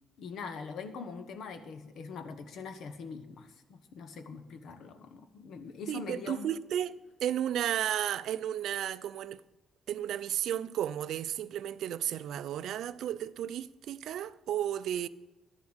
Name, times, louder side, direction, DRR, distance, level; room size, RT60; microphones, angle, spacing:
voice 1, 0.2-6.5, left 5 dB, 70° left, 1.2 m, -43 dB
voice 2, 5.9-9.4 9.9-15.1, right 10 dB, 75° right, 0.4 m, -33 dB
11.5 x 7.1 x 8.0 m
cardioid pair, 90°, 0 cm